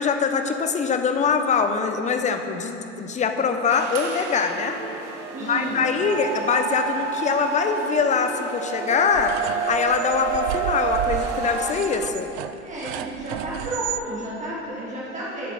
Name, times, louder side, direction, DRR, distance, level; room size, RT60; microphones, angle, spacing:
voice 1, 0.0-4.8 5.4-9.4 9.7-12.3, left 5 dB, 20° left, 7 dB, 0.9 m, -23 dB
sound 1, 3.7-11.7, right 6 dB, 70° right, 1.4 m, -29 dB
voice 2, 5.3-6.1 12.6-15.5, right 1 dB, 20° right, -6 dB, 2.5 m, -32 dB
sound 2, 9.1-14.0, right 12 dB, 40° right, 0.5 m, -33 dB
17.5 x 8.1 x 4.2 m, 2.8 s
figure-of-eight pair, 80°, 38 cm